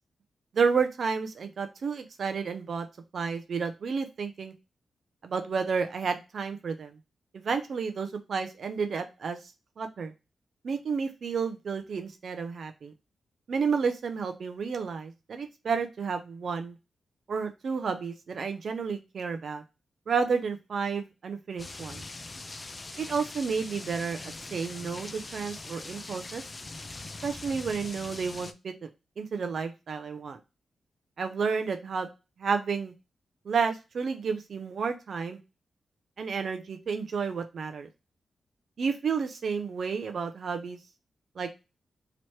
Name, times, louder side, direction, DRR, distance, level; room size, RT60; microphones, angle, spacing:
voice 1, 0.5-2.9 3.1-4.5 5.2-7.0 7.3-9.4 9.8-10.1 10.6-12.9 13.5-16.8 17.3-19.6 20.1-22.0 23.0-26.4 27.2-28.9 29.2-30.4 31.2-32.1 32.4-32.9 33.5-35.4 36.2-37.9 38.8-40.8 41.4-41.5, right 5 dB, 65° right, 7 dB, 0.5 m, -31 dB
sound 1, 21.6-28.5, left 2 dB, 30° left, 0.4 m, -42 dB
3.1 x 2.9 x 4.3 m, 0.27 s
wide cardioid pair, 105°, 0 cm